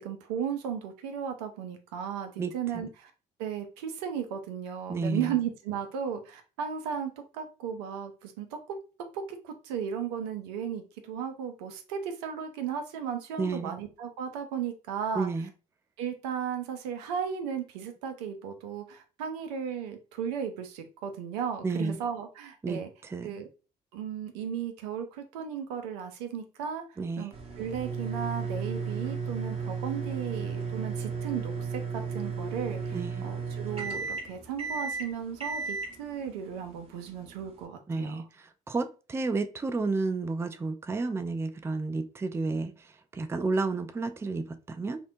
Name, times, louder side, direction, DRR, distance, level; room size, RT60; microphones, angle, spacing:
voice 1, 0.0-3.1 3.4-8.8 9.1-15.3 16.0-22.9 23.2-23.5 23.9-26.8 27.2-38.2, right 8 dB, 80° right, 0.5 m, -35 dB
voice 2, 2.4-2.9 4.9-5.4 13.4-13.7 15.1-15.5 21.6-22.0 22.6-23.4 27.0-27.3 32.9-33.2 37.9-45.0, right 3 dB, 15° right, 0.3 m, -31 dB
sound 1, 27.3-37.6, right 5 dB, 30° right, 1.1 m, -34 dB
2.7 x 2.1 x 2.6 m
hypercardioid pair, 55°, 20 cm